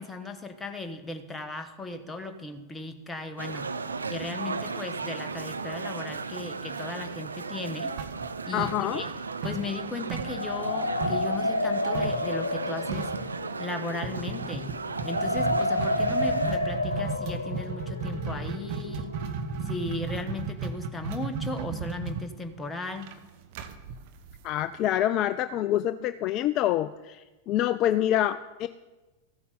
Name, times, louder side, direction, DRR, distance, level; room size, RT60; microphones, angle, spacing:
voice 1, 0.0-3.7 4.1-7.9 8.5-9.1 9.4-13.1 13.6-14.7 15.0-19.1 19.6-23.1, left 2 dB, 10° left, 7 dB, 1.2 m, -36 dB
sound 1, 3.4-16.5, right 4 dB, 75° right, 0.6 m, -36 dB
sound 2, 8.0-9.2 9.4-11.3 11.9-12.3 12.6-12.7 12.9-13.3 14.0-24.8, right 5 dB, 50° right, 1.0 m, -34 dB
voice 2, 8.5-9.0 24.4-28.7, left 12 dB, 35° left, 13 dB, 0.3 m, -26 dB
sound 3, 10.1-20.0, left 1 dB, 80° left, 0.7 m, -31 dB
14.5 x 8.4 x 5.4 m, 1.2 s
figure-of-eight pair, 90°, 0 cm